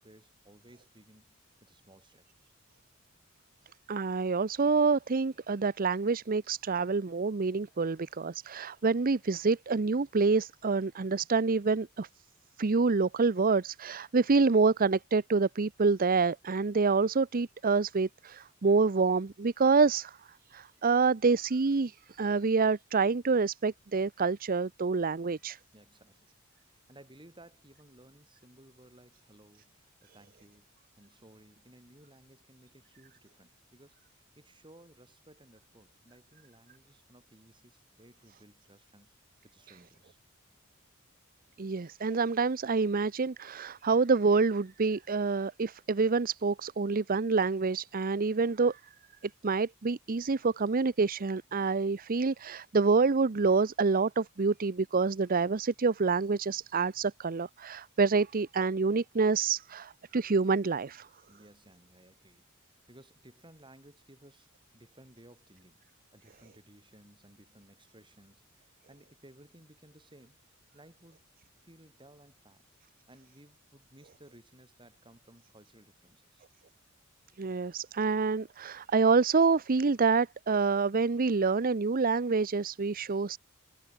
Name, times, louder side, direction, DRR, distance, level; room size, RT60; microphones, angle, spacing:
voice 1, 0.0-2.5 25.7-26.3 26.7-39.1 39.4-40.2 61.3-65.8 66.1-70.4 70.7-71.2 71.6-72.6 73.1-76.5, right 1 dB, 25° right, 7.4 m, -58 dB
voice 2, 3.9-12.1 12.6-20.2 20.5-25.6 41.6-48.8 49.2-61.1 77.4-83.4, right 4 dB, 45° right, 0.6 m, -27 dB
head